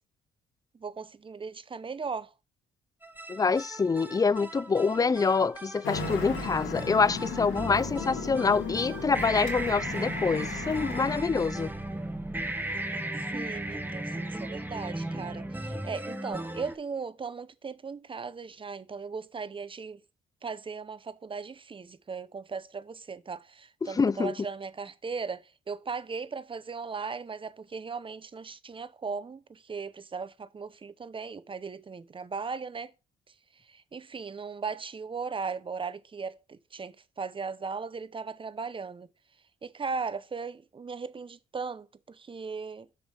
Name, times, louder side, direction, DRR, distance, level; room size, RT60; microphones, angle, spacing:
voice 1, 0.7-2.3 13.3-20.0 20.4-32.9 33.7-39.1 39.6-42.9, right 5 dB, 25° right, 0.7 m, -37 dB
sound 1, 3.0-16.8, right 1 dB, 10° right, 1.0 m, -36 dB
voice 2, 3.3-11.7 23.8-24.3, left 4 dB, 20° left, 0.4 m, -26 dB
Traffic noise roadway noise, 5.8-11.2, left 4 dB, 75° left, 2.7 m, -36 dB
6.9 x 5.1 x 4.8 m
cardioid pair, 90°, 20 cm